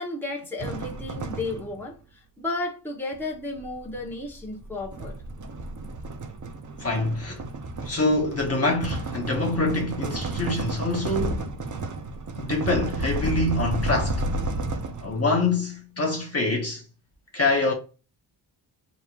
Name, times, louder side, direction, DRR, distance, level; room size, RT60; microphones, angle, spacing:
voice 1, 0.0-5.1, left 2 dB, 5° left, 1.1 m, -33 dB
sound 1, 0.6-1.9 3.1-15.4, right 2 dB, 40° right, 0.7 m, -32 dB
voice 2, 6.8-7.4 7.8-11.5 12.4-14.3 15.0-16.8 17.3-17.7, left 2 dB, 30° left, 1.1 m, -25 dB
5.1 x 3.1 x 2.5 m
cardioid pair, 100°, 47 cm